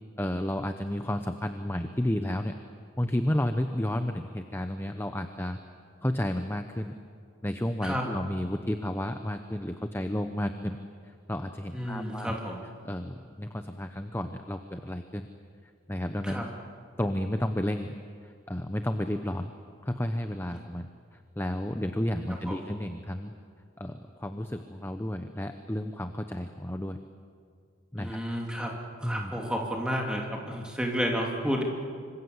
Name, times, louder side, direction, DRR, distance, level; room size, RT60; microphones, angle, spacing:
voice 1, 0.2-2.5 3.0-5.6 6.0-6.9 7.4-10.8 11.0-12.3 12.8-15.2 15.9-16.5 17.0-18.0 18.2-19.5 19.8-23.3 23.8-27.0 27.9-28.2 29.0-29.3, left 1 dB, 10° left, 7 dB, 0.8 m, -32 dB
voice 2, 11.7-12.7 16.2-16.5 22.3-22.7 28.0-31.6, equal, 5° right, 0 dB, 3.0 m, -31 dB
26.5 x 25.5 x 8.1 m, 2.2 s
head